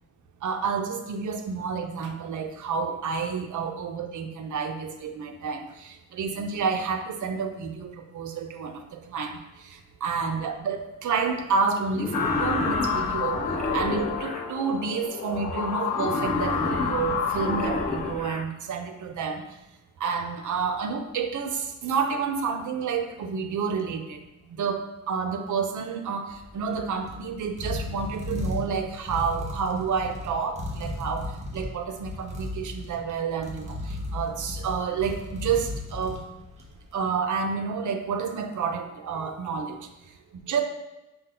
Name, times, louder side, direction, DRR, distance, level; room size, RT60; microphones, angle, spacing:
voice 1, 0.4-19.4 20.0-24.2 24.5-36.2 36.9-39.9 40.3-40.6, right 5 dB, 70° right, 6 dB, 0.6 m, -29 dB
Wild animals, 11.9-14.4 15.9-18.4, left 2 dB, 25° left, 0.6 m, -31 dB
sound 1, 12.1-18.1, left 6 dB, 80° left, 0.6 m, -29 dB
sound 2, 26.3-36.9, left 2 dB, 20° right, 0.9 m, -36 dB
5.2 x 2.2 x 3.7 m, 1.0 s
cardioid pair, 100°, 31 cm